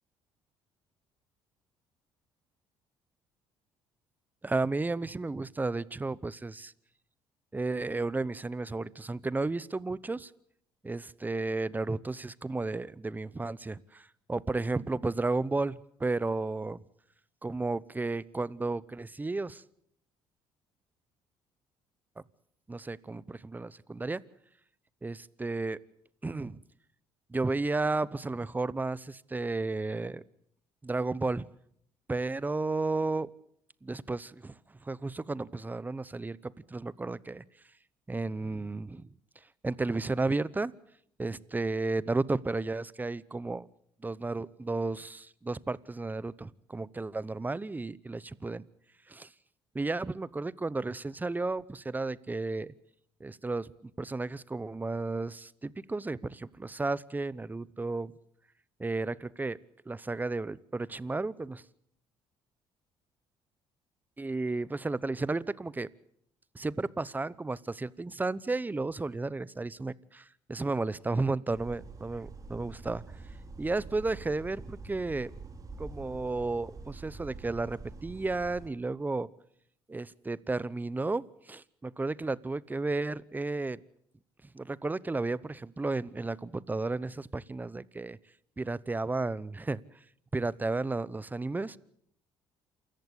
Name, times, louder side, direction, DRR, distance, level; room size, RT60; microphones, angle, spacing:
voice 1, 4.4-6.7 7.5-10.3 10.8-16.8 17.4-19.6 22.7-24.2 25.0-25.8 26.2-26.6 27.3-30.2 30.8-31.4 32.1-33.3 33.8-37.4 38.1-39.1 39.6-40.7 41.2-43.7 44.0-48.6 49.1-49.3 49.7-52.7 53.2-58.1 58.8-59.6 59.9-61.6 64.2-65.9 66.5-73.0 73.6-75.3 75.8-79.3 79.9-83.8 84.5-88.2 88.6-89.8 90.3-91.8, right 3 dB, 15° right, 20 dB, 0.9 m, -33 dB
sound 1, 71.5-78.7, right 4 dB, 35° right, 3.0 m, -46 dB
28.0 x 14.5 x 8.1 m, 0.68 s
supercardioid pair, 70°, 10 cm